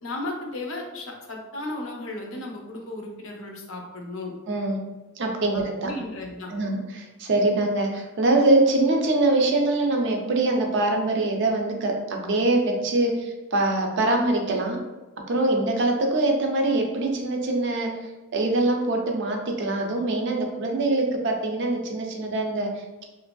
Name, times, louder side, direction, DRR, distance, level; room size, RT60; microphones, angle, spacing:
voice 1, 0.0-4.3 5.5-6.5, left 2 dB, 60° left, 0 dB, 0.5 m, -35 dB
voice 2, 4.5-4.8 5.2-5.9 6.5-14.8 15.3-23.0, right 2 dB, 55° right, 2 dB, 0.4 m, -23 dB
2.9 x 2.5 x 2.2 m, 1.1 s
head